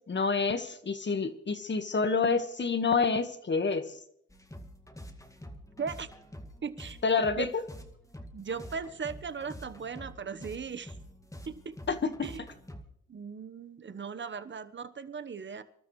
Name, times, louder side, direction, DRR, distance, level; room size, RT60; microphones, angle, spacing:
voice 1, 0.1-4.0 7.0-7.6 11.9-12.3, left 4 dB, 35° left, 10 dB, 1.6 m, -28 dB
sound 1, 4.3-12.8, equal, 10° left, 2.0 m, -47 dB
voice 2, 6.6-7.0 7.3-7.5 8.3-10.9 11.5-11.8 12.2-12.4 13.1-15.6, right 6 dB, 35° right, 12 dB, 1.1 m, -38 dB
26.0 x 12.5 x 3.2 m, 0.72 s
supercardioid pair, 65°, 31 cm